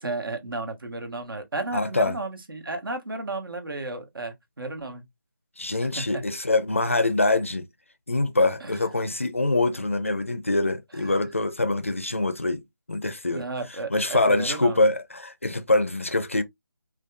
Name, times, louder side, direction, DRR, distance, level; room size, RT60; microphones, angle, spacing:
voice 1, 0.0-5.0 5.8-6.2 8.6-8.8 10.9-11.2 13.3-14.8, right 2 dB, 80° right, 1.3 m, -33 dB
voice 2, 1.7-2.2 5.6-7.7 8.1-12.6 12.9-13.4 13.9-16.4, left 2 dB, 35° left, 0.4 m, -24 dB
5.0 x 2.3 x 2.3 m
figure-of-eight pair, 180°, 12 cm